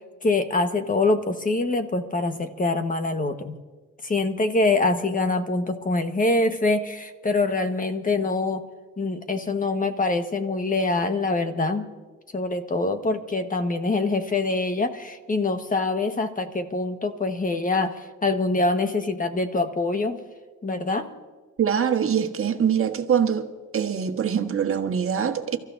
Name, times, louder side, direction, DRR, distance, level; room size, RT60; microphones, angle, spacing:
voice 1, 0.2-3.5 4.0-8.6 9.0-11.9 12.3-20.2 20.6-21.1, left 3 dB, 25° left, 1.4 m, -24 dB
voice 2, 21.6-23.5 23.7-25.6, right 8 dB, 45° right, 1.5 m, -23 dB
30.0 x 14.0 x 2.7 m
cardioid pair, 90°, 30 cm